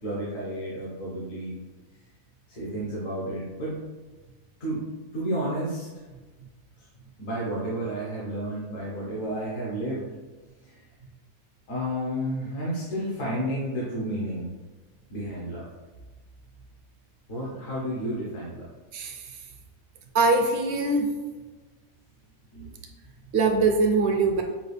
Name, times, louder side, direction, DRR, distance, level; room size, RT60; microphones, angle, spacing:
voice 1, 0.0-1.6 2.5-3.8 4.6-4.9 5.1-5.9 7.2-10.1 10.6-10.8 11.7-14.5 15.1-15.7 17.3-18.7 22.5-22.8, right 1 dB, 70° left, -6 dB, 1.4 m, -31 dB
voice 2, 18.9-19.2 20.1-21.1 23.3-24.4, right 3 dB, 65° right, 4 dB, 0.7 m, -22 dB
5.8 x 2.4 x 3.2 m, 1.3 s
omnidirectional pair, 1.4 m